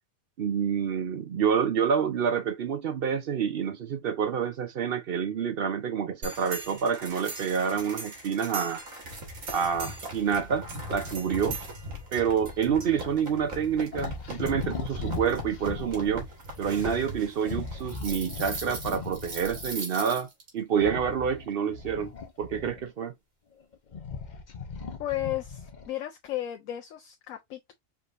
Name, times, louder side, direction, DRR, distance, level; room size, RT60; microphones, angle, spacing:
voice 1, 0.4-8.8 9.5-11.6 12.1-16.3 16.6-23.1, right 7 dB, 55° right, 0.7 m, -28 dB
sound 1, 6.2-20.5, right 2 dB, 90° right, 2.0 m, -39 dB
sound 2, 13.9-16.3 17.4-19.8 20.7-23.0 23.6-26.0, left 4 dB, 45° left, 0.7 m, -39 dB
voice 2, 25.0-27.7, left 14 dB, 80° left, 1.1 m, -34 dB
4.8 x 3.3 x 2.5 m
omnidirectional pair, 1.4 m